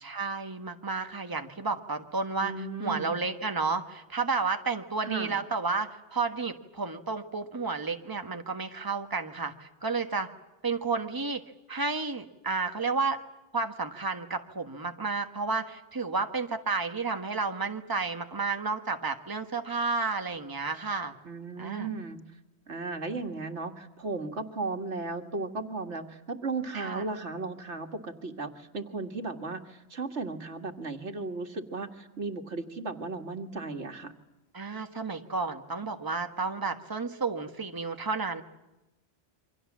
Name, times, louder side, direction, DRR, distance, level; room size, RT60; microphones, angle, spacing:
voice 1, 0.0-10.3 10.6-11.4 11.7-13.2 13.5-21.1 21.6-21.9 26.7-27.0 34.5-38.4, right 4 dB, 20° right, 6 dB, 1.4 m, -31 dB
voice 2, 2.4-3.1 5.0-5.4 21.2-22.2 22.7-34.1, right 3 dB, 90° right, 6 dB, 2.1 m, -35 dB
28.0 x 24.5 x 7.3 m, 1.0 s
omnidirectional pair, 1.1 m